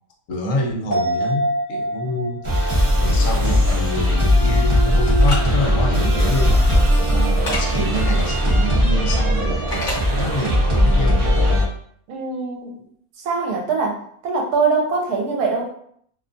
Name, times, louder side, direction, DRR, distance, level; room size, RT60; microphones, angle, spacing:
voice 1, 0.3-6.8 7.1-9.7 10.1-11.3, left 1 dB, 65° left, -1 dB, 0.9 m, -27 dB
sound 1, 0.9-4.6 4.9-5.0, right 1 dB, 15° left, 1.0 m, -27 dB
sound 2, 2.4-11.6, equal, 50° right, 0.3 m, -18 dB
sound 3, 5.2-5.4 7.5-7.6 9.7-10.0, left 2 dB, 40° left, 0.8 m, -26 dB
voice 2, 12.1-12.8 13.2-15.7, right 4 dB, 85° right, 0 dB, 1.1 m, -23 dB
2.6 x 2.2 x 2.5 m, 0.64 s
omnidirectional pair, 1.6 m